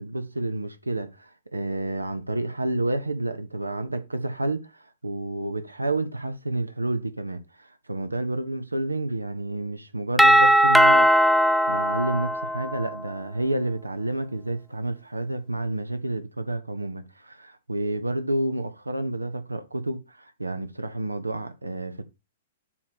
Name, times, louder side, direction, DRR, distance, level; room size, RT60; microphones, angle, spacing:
voice 1, 0.0-11.1 11.6-22.0, right 2 dB, 90° right, 0.7 m, -30 dB
Doorbell, 10.2-13.0, equal, ahead, 0.4 m, -19 dB
7.5 x 3.0 x 5.8 m
figure-of-eight pair, 110°, 0 cm